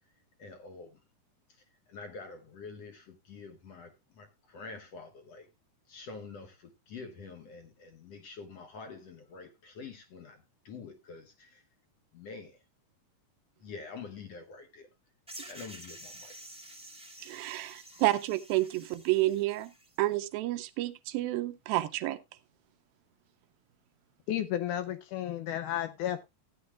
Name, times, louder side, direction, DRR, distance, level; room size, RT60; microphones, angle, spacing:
voice 1, 0.4-1.0 1.5-5.5 5.9-11.6 12.1-12.6 13.6-14.9 15.5-16.3 17.9-18.0, left 4 dB, 60° left, 1.8 m, -47 dB
sound 1, 15.3-20.0, right 1 dB, 5° right, 0.7 m, -50 dB
voice 2, 17.2-19.7 20.0-22.2, right 16 dB, 85° right, 2.6 m, -30 dB
voice 3, 24.3-26.2, left 11 dB, 75° left, 2.0 m, -32 dB
15.5 x 9.6 x 2.3 m
omnidirectional pair, 4.1 m